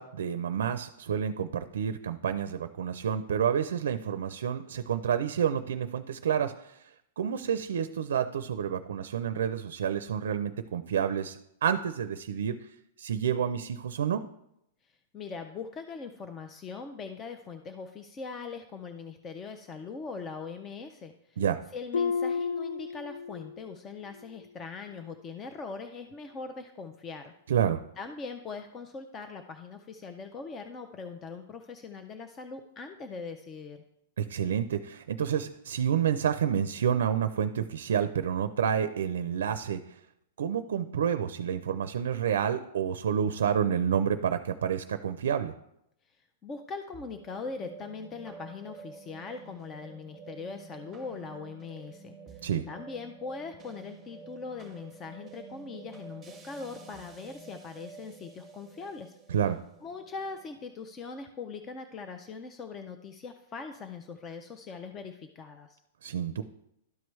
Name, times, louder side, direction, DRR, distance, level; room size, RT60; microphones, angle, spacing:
voice 1, 0.0-6.9 7.2-12.7 13.0-14.2 21.4-21.6 27.5-27.8 34.2-40.0 40.4-45.5 52.4-52.6 59.3-59.6 66.0-66.4, right 8 dB, 85° right, 11 dB, 0.4 m, -29 dB
voice 2, 15.1-21.4 21.7-27.3 28.0-33.8 46.4-59.1 59.8-65.8, left 4 dB, 15° left, 6 dB, 0.4 m, -41 dB
Harp, 21.9-23.7 24.1-24.5 25.0-25.1, left 5 dB, 80° left, 0.6 m, -32 dB
sound 1, 46.9-61.4, right 5 dB, 5° right, 0.9 m, -50 dB
12.0 x 4.6 x 3.1 m, 0.79 s
supercardioid pair, 170°, 0 cm